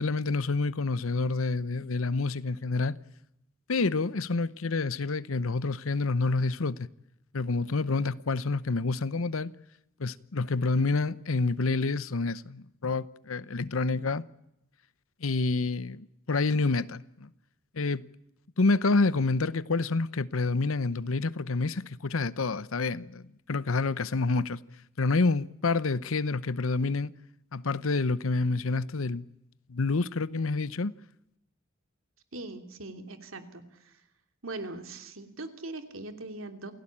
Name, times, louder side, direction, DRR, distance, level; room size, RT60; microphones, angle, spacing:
voice 1, 0.0-3.0 3.7-6.9 7.3-9.5 10.0-14.2 15.2-17.3 17.7-18.0 18.6-23.2 23.5-24.6 25.0-27.1 27.5-29.2 29.7-30.9, left 3 dB, 85° left, 0.8 m, -28 dB
voice 2, 32.3-34.0 34.4-36.7, right 2 dB, 75° right, 3.0 m, -41 dB
28.0 x 17.0 x 8.7 m
head